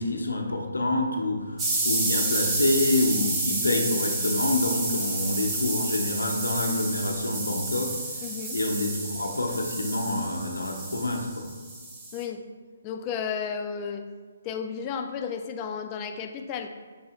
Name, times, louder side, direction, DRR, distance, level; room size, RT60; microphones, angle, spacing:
voice 1, 0.0-1.4 1.8-7.9 8.5-11.5, left 2 dB, 80° left, 2 dB, 0.7 m, -27 dB
sound 1, 1.6-12.2, right 2 dB, 20° right, 0.7 m, -30 dB
voice 2, 8.2-8.6 12.1-12.5 12.8-14.0 14.4-16.7, left 6 dB, 25° left, 4 dB, 0.4 m, -33 dB
6.4 x 2.7 x 3.0 m, 1.5 s
figure-of-eight pair, 140°, 0 cm